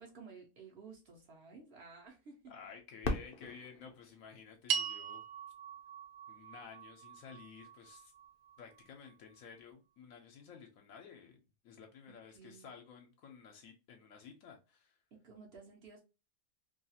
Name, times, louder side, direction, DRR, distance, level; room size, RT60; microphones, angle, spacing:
voice 1, 0.0-2.5 12.3-12.7 15.1-16.0, right 5 dB, 60° right, 0.8 m, -54 dB
voice 2, 2.5-5.2 6.3-8.1 8.6-15.0, left 6 dB, 80° left, 1.0 m, -53 dB
Fireworks, 3.0-5.8 6.5-6.6 7.3-7.7 9.6-9.7, left 3 dB, 55° left, 0.6 m, -42 dB
sound 1, 4.7-9.2, right 8 dB, 85° right, 1.0 m, -41 dB
2.6 x 2.3 x 2.7 m
omnidirectional pair, 1.4 m